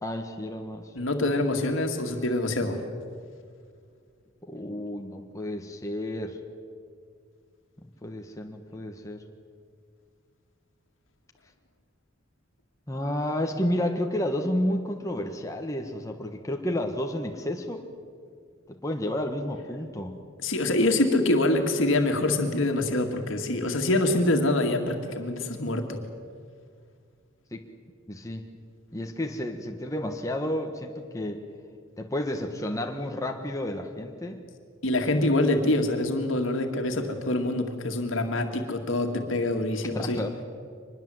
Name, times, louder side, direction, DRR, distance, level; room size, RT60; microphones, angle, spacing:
voice 1, 0.0-0.9 4.5-6.4 8.0-9.2 12.9-17.8 18.7-20.2 27.5-27.6 28.1-28.4 28.9-31.4 32.0-34.4 39.9-40.4, left 1 dB, 15° left, 2 dB, 1.4 m, -31 dB
voice 2, 1.0-2.8 20.4-26.0 34.8-40.2, left 1 dB, 70° left, 4 dB, 2.1 m, -25 dB
24.5 x 21.0 x 7.8 m, 2.1 s
head